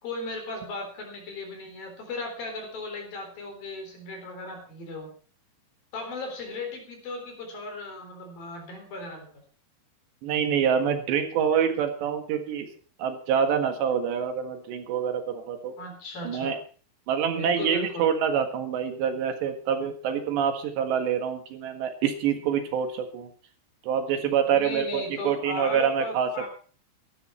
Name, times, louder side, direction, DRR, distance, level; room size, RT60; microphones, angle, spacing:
voice 1, 0.0-5.1 5.9-9.3 15.8-16.5 17.3-18.1 24.4-26.5, left 2 dB, 55° left, 3 dB, 5.5 m, -36 dB
voice 2, 10.2-12.7 13.0-15.7 16.2-16.6 17.1-23.3 23.8-26.5, right 7 dB, 75° right, 6 dB, 3.9 m, -26 dB
16.0 x 12.5 x 4.4 m, 0.42 s
omnidirectional pair, 5.1 m